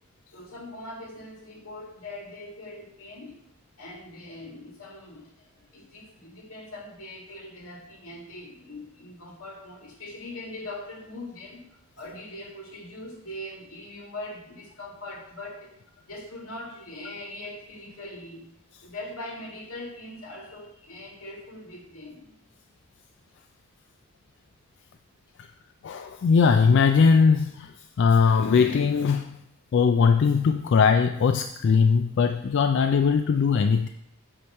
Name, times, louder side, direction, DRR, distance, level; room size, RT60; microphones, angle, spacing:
voice 1, 0.3-3.4 3.8-15.8 16.1-18.5 18.8-22.3, left 1 dB, 85° left, -1 dB, 2.0 m, -41 dB
voice 2, 25.8-27.7 28.0-29.3 29.7-33.9, left 5 dB, 55° left, 6 dB, 0.3 m, -20 dB
8.6 x 3.1 x 6.4 m, 0.75 s
head